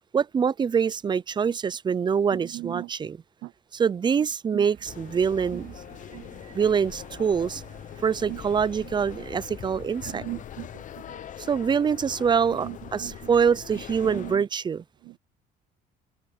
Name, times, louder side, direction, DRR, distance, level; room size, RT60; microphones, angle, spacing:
voice 1, 0.1-3.2 3.7-5.7 6.5-7.6 8.0-10.2 11.4-14.8, right 6 dB, 25° right, 0.5 m, -25 dB
voice 2, 2.3-2.9 3.4-3.5 4.5-4.6 5.5-5.6 6.1-6.3 8.3-8.4 10.1-10.8 11.1-11.2 12.6-13.2 14.0-14.4 15.1-15.2, right 19 dB, 85° right, 0.4 m, -38 dB
sound 1, 4.6-10.2, right 10 dB, 55° right, 2.3 m, -50 dB
sound 2, 4.9-14.4, left 10 dB, 50° left, 1.0 m, -42 dB
cardioid pair, 110°, 17 cm